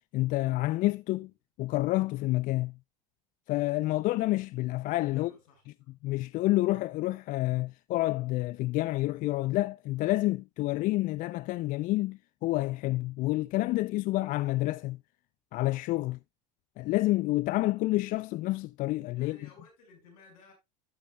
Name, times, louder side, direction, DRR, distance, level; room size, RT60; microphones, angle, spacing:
voice 1, 0.1-1.3 1.6-2.8 3.5-5.3 6.0-15.0 15.5-16.2 16.8-19.4, left 18 dB, 50° left, 0.4 m, -29 dB
voice 2, 5.1-5.9 19.1-20.5, left 4 dB, 80° left, 5.3 m, -57 dB
14.5 x 7.0 x 2.2 m
hypercardioid pair, 90°, 18 cm